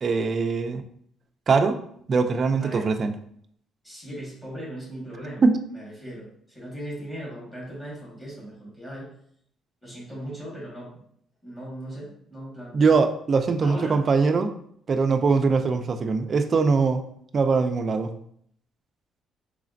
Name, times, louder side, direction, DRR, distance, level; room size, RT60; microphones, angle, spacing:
voice 1, 0.0-0.8 1.5-1.8 2.1-3.1 5.4-5.6 12.7-14.5 14.9-17.0 17.3-18.1, right 4 dB, 30° right, 7 dB, 0.3 m, -22 dB
voice 2, 3.8-5.4 5.7-9.1 9.8-11.0 11.4-12.8 13.6-14.0, right 1 dB, 10° left, -5 dB, 1.5 m, -38 dB
4.1 x 3.1 x 2.5 m, 0.66 s
cardioid pair, 165°, 0 cm